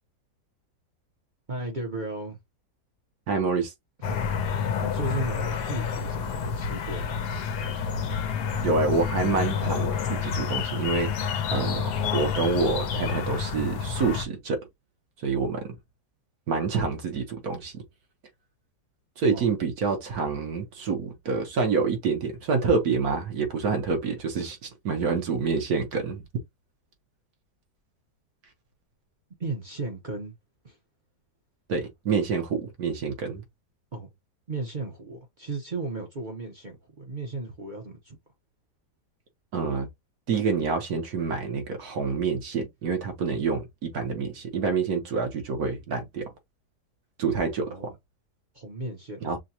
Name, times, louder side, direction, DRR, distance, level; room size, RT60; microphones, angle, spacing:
voice 1, 1.5-2.4 4.8-7.2 19.2-19.5 29.4-30.3 30.6-30.8 33.9-34.1 34.5-38.2 47.6-48.0 48.5-49.3, right 2 dB, 40° right, 0.8 m, -35 dB
voice 2, 3.3-3.7 8.6-11.1 11.5-14.6 15.2-15.8 16.5-17.8 19.2-26.2 31.7-33.4 39.5-39.9 40.3-46.3 47.2-47.9 49.2-49.4, right 4 dB, 65° right, 1.4 m, -27 dB
sound 1, 4.0-14.3, left 7 dB, 75° left, 1.3 m, -29 dB
6.2 x 2.2 x 2.7 m
omnidirectional pair, 1.7 m